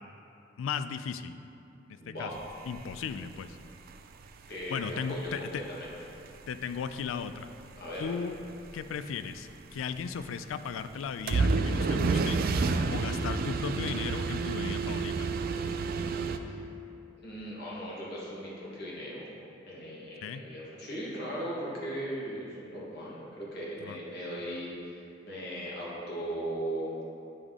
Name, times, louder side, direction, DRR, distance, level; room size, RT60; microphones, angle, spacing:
voice 1, 0.6-1.3 1.9-2.3 2.7-3.6 4.7-5.6 6.5-7.5 8.0-8.4 8.7-12.4 12.9-15.3 20.2-20.4 23.8-24.0, left 6 dB, 80° left, 11 dB, 0.3 m, -36 dB
voice 2, 2.0-2.4 4.5-5.9 7.8-8.1 16.5-16.6 17.2-19.3 19.6-25.0 25.2-26.9, equal, 60° left, -6 dB, 1.4 m, -38 dB
sound 1, 2.3-3.9 4.2-4.3 4.6-4.8 5.2-5.6 5.9-6.3 6.5-6.6 6.8-7.1 7.5-7.7 8.0-8.8 9.4-9.5 9.8-9.9 10.2-10.5 10.8-10.9 11.3-16.4, right 4 dB, 50° right, 0.3 m, -29 dB
9.8 x 3.5 x 3.6 m, 2.7 s
head